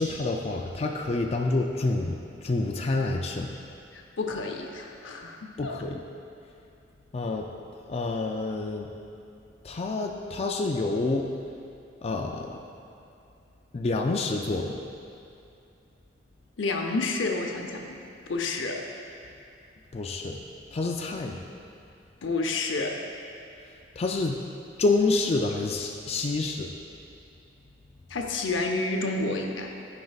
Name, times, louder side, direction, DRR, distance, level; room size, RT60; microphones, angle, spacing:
voice 1, 0.0-2.2 2.4-3.5 5.6-6.0 7.1-7.5 7.9-8.9 9.6-11.3 12.0-12.6 13.7-14.8 19.9-20.4 20.7-21.4 24.0-24.4 24.8-26.7, left 3 dB, 35° left, 1 dB, 0.4 m, -28 dB
voice 2, 3.9-5.8 16.6-18.0 18.3-18.8 22.2-23.0 28.1-29.7, left 3 dB, 85° left, 2 dB, 0.7 m, -30 dB
13.0 x 5.2 x 2.4 m, 2.6 s
head